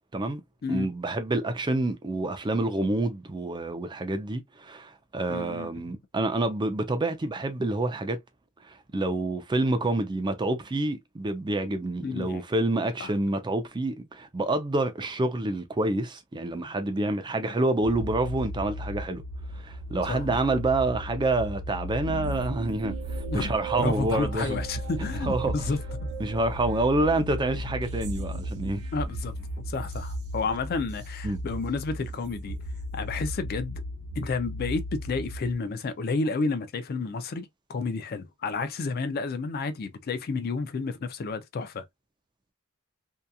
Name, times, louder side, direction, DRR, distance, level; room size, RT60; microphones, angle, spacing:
voice 1, 0.7-8.2 8.6-19.2 19.5-24.6 25.0-25.5 26.2-28.8 31.2-31.4, right 2 dB, 20° right, 0.4 m, -28 dB
voice 2, 5.3-5.8 12.0-12.4 13.0-13.1 17.3-17.4 20.1-20.4 23.3-23.5 23.8-26.1 28.9-29.3 29.7-32.6 32.9-33.8 34.2-41.8, left 4 dB, 45° left, 0.4 m, -31 dB
sound 1, 17.8-35.6, left 1 dB, 70° right, 1.0 m, -36 dB
sound 2, 22.1-33.6, right 5 dB, 85° right, 0.6 m, -40 dB
2.8 x 2.3 x 2.2 m
head